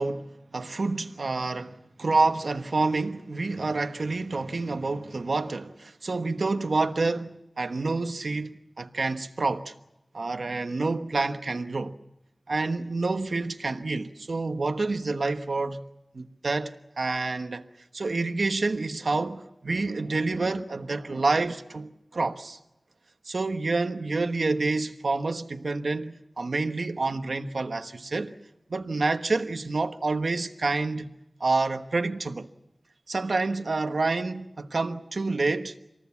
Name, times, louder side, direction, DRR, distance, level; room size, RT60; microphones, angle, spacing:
voice 1, 0.0-9.7 10.1-12.0 12.5-15.8 16.1-17.7 17.9-22.6 23.3-28.3 28.7-31.1 31.4-32.5 33.1-35.7, right 3 dB, 80° right, 1.2 m, -28 dB
26.0 x 19.0 x 7.2 m
wide cardioid pair, 65°, 0 cm